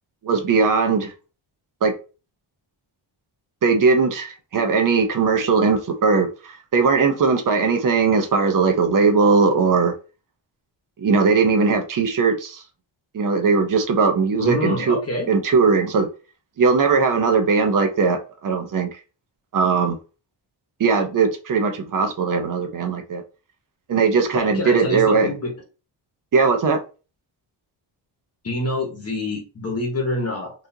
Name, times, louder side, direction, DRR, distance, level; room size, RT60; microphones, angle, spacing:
voice 1, 0.2-1.1 1.8-1.9 3.6-9.9 11.0-12.6 13.1-15.0 15.3-16.1 16.6-18.9 19.5-20.0 20.8-23.2 23.9-25.3 26.3-26.8, right 4 dB, 45° right, 0.7 m, -19 dB
voice 2, 14.4-15.3 24.3-25.5 28.4-30.5, left 1 dB, 30° left, 1.0 m, -26 dB
4.1 x 2.6 x 2.7 m
wide cardioid pair, 175°, 46 cm